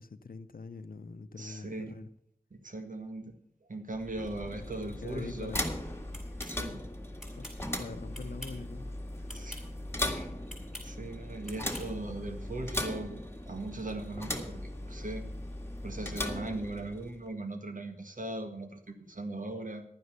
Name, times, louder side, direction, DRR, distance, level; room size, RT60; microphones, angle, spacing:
voice 1, 0.0-2.1 5.0-5.7 7.4-7.5 7.8-9.3, left 4 dB, 70° left, 11 dB, 0.8 m, -44 dB
voice 2, 1.4-2.0 2.5-3.3 3.7-5.5 6.4-6.8 9.3-9.6 10.1-10.3 10.8-13.2 13.5-15.3 15.8-19.8, right 2 dB, 60° right, 6 dB, 1.8 m, -39 dB
sound 1, 3.9-17.2, left 1 dB, 15° left, 1.9 m, -38 dB
sound 2, 6.1-6.6 7.2-7.6 8.1-8.6 9.3-9.6 10.5-10.9 11.5-11.9, left 1 dB, ahead, 6.3 m, -46 dB
11.5 x 9.6 x 6.8 m, 0.67 s
wide cardioid pair, 50°, 15 cm